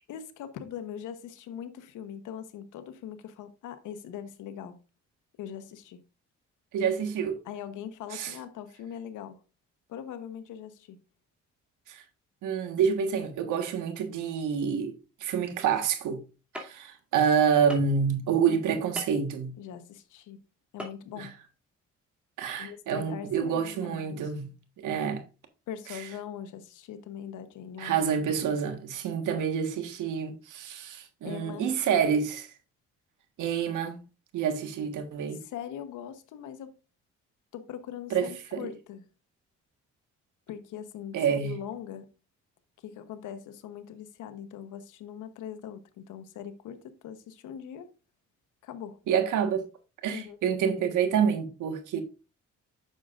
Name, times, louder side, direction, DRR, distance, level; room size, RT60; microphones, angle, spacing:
voice 1, 0.1-4.8 5.4-6.0 7.4-9.4 9.9-11.0 19.6-20.4 20.7-21.3 22.6-24.3 25.7-28.3 31.2-31.7 35.3-36.7 37.5-39.0 40.5-42.1 42.8-47.9 48.6-49.0 50.1-50.4, left 9 dB, 85° left, 1.1 m, -41 dB
voice 2, 6.7-7.4 8.1-8.3 11.9-12.0 12.4-14.9 15.2-16.2 16.6-19.6 21.2-21.3 22.4-24.5 24.8-25.2 25.9-26.0 27.8-32.5 33.4-34.0 34.3-35.4 38.1-38.7 41.1-41.5 49.1-49.7 50.0-52.0, right 7 dB, 80° right, 1.5 m, -28 dB
sound 1, 16.5-16.7 17.7-18.0 19.0-19.2 20.8-20.9 21.3-21.4, equal, 5° right, 2.5 m, -38 dB
9.2 x 6.5 x 2.5 m
cardioid pair, 90°, 30 cm